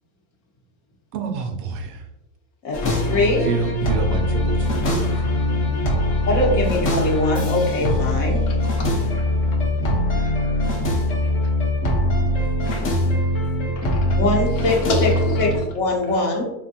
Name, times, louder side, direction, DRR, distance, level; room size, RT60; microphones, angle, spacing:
voice 1, 1.1-2.1 3.4-5.8 16.1-16.2, right 5 dB, 50° right, 5 dB, 0.4 m, -29 dB
voice 2, 2.6-3.5 6.2-8.4 14.1-15.1 15.4-16.4, left 2 dB, 55° left, 0 dB, 0.9 m, -22 dB
sound 1, 2.7-15.6, left 1 dB, 35° left, 0.6 m, -22 dB
voice 3, 8.5-9.6 10.1-10.6 11.2-11.5 12.7-12.9 13.8-14.2 14.6-15.4, left 2 dB, 75° left, 1 dB, 0.9 m, -32 dB
3.4 x 2.1 x 2.7 m, 0.90 s
cardioid pair, 145°, 40 cm